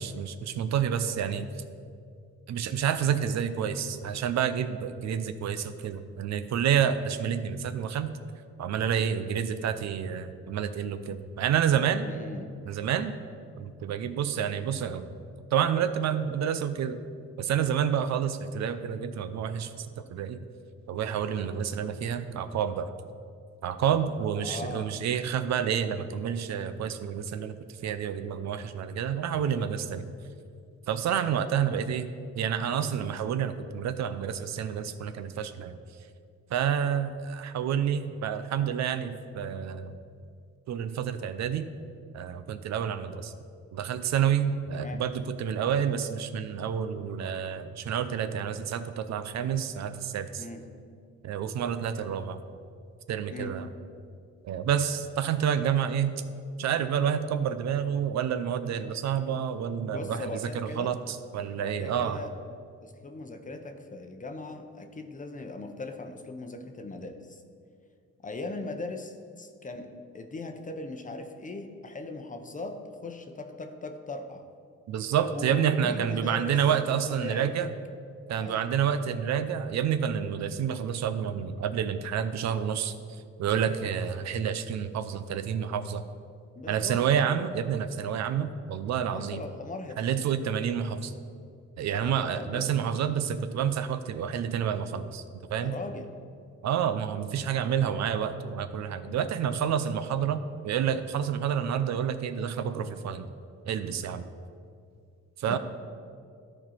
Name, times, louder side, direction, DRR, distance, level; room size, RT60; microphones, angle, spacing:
voice 1, 0.0-1.5 2.5-8.1 8.6-12.1 12.7-13.2 13.6-15.1 15.5-17.0 17.4-20.4 20.9-22.9 23.6-27.6 27.8-30.0 30.9-32.1 32.3-35.8 36.5-40.0 40.7-41.7 42.1-43.3 43.7-50.4 51.2-52.4 53.1-53.6 54.4-56.2 56.6-62.2 74.9-77.7 78.3-83.0 83.4-86.0 86.7-89.4 90.0-91.1 91.8-95.2 95.5-95.8 96.6-103.3 103.7-104.3 105.4-105.6, right 8 dB, 65° right, 10 dB, 0.6 m, -29 dB
voice 2, 12.0-12.5 24.4-25.0 44.7-45.0 50.4-50.7 53.3-53.6 59.9-60.9 61.6-62.3 62.8-67.4 68.2-74.4 75.3-77.7 78.4-78.7 86.6-87.0 89.1-90.2 92.0-92.7 95.6-96.1 105.5-105.6, left 2 dB, 25° left, 6 dB, 0.8 m, -39 dB
13.0 x 4.4 x 4.2 m, 2.3 s
cardioid pair, 90°, 30 cm